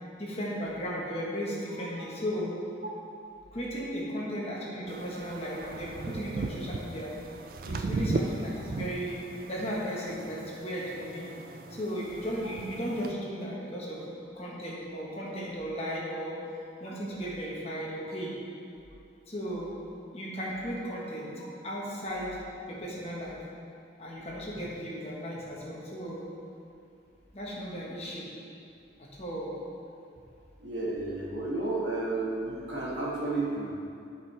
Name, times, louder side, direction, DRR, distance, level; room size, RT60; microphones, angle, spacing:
voice 1, 0.2-2.5 3.5-7.1 7.6-9.2 9.5-11.3 11.7-14.0 14.3-16.4 16.8-18.4 19.3-19.7 20.1-21.3 21.6-22.4 22.7-23.4 24.0-26.2 27.3-28.3 29.0-29.5, equal, 35° left, -5 dB, 1.4 m, -35 dB
sound 1, 4.9-13.1, right 3 dB, 50° right, 0.4 m, -37 dB
voice 2, 30.6-33.7, right 2 dB, 70° right, -6 dB, 1.9 m, -32 dB
12.5 x 5.3 x 3.4 m, 2.6 s
head